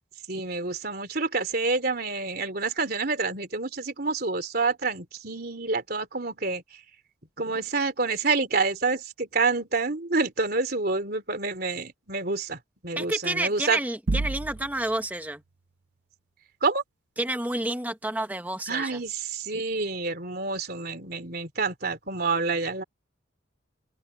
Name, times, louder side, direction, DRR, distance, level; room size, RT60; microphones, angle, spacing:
voice 1, 0.3-6.6 7.4-12.6 12.8-13.8 16.6-16.8 18.7-22.8, right 3 dB, 50° right, 3.5 m, -28 dB
voice 2, 13.0-15.4 17.2-19.0, right 1 dB, 10° right, 1.0 m, -30 dB
sound 1, 14.1-15.0, right 2 dB, 65° right, 0.7 m, -29 dB
open air
head